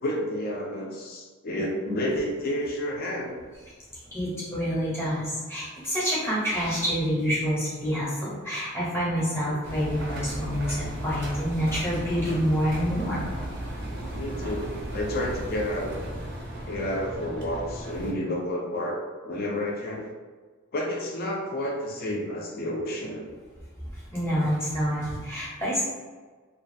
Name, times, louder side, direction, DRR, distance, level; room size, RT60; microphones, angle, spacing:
voice 1, 0.0-3.4 14.1-15.9 16.7-19.0 19.2-20.1 20.7-23.3, left 1 dB, 40° left, -1 dB, 0.4 m, -30 dB
voice 2, 4.1-13.2 23.9-25.8, equal, 10° left, -8 dB, 0.7 m, -27 dB
Engine, 9.6-18.1, right 1 dB, 50° right, 0.5 m, -35 dB
2.4 x 2.3 x 2.5 m, 1.4 s
head